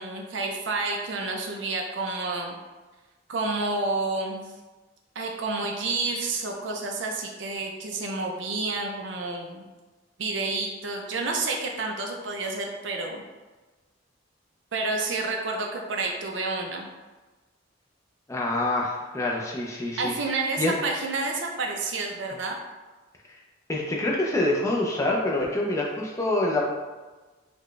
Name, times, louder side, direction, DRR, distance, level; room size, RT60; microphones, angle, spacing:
voice 1, 0.0-2.6 3.3-4.5 5.2-9.6 10.2-13.2 14.7-16.9 20.0-22.6, right 3 dB, 70° right, 1 dB, 0.6 m, -29 dB
voice 2, 18.3-20.1 20.6-20.8 23.7-26.6, left 2 dB, 15° left, -2 dB, 0.5 m, -26 dB
4.0 x 2.2 x 3.2 m, 1.2 s
head